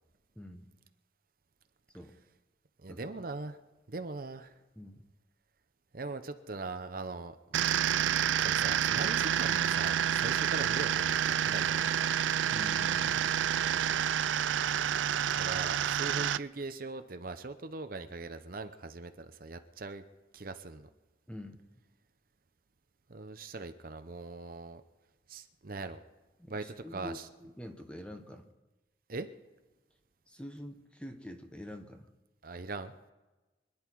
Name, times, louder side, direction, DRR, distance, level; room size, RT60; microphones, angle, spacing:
voice 1, 0.3-0.7 1.9-2.1 2.9-3.1 4.8-5.0 8.6-8.7 12.5-13.3 21.3-21.6 26.4-28.5 30.3-32.1, left 1 dB, 5° left, 5 dB, 1.1 m, -46 dB
voice 2, 2.8-3.6 3.9-4.5 5.9-7.6 8.4-12.0 13.6-14.0 15.3-20.0 20.3-20.9 23.1-24.8 25.3-26.0 26.5-27.3 29.1-29.3 32.4-32.9, right 3 dB, 50° right, 9 dB, 0.8 m, -41 dB
sound 1, 7.5-16.4, right 9 dB, 80° right, 0.4 m, -29 dB
25.0 x 10.5 x 4.7 m, 1.1 s
head